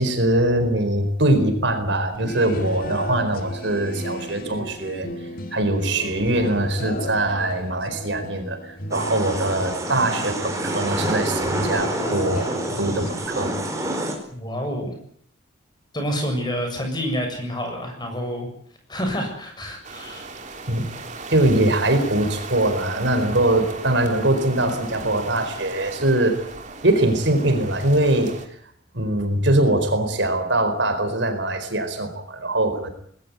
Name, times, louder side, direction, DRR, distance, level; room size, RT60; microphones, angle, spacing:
voice 1, 0.0-5.1 5.5-12.5 12.8-13.5 20.7-20.8 21.3-26.4 26.8-28.3 28.9-32.9, right 1 dB, 60° right, 8 dB, 4.5 m, -22 dB
sound 1, 2.1-13.3, left 1 dB, 45° left, 2.3 m, -34 dB
sound 2, 8.9-14.2, right 1 dB, 15° right, 4.7 m, -28 dB
voice 2, 14.3-14.9 15.9-18.5 18.9-20.3, equal, 20° left, 4 dB, 7.2 m, -28 dB
sound 3, 19.8-28.5, right 3 dB, 35° right, 3.2 m, -37 dB
20.5 x 18.5 x 9.7 m, 0.64 s
head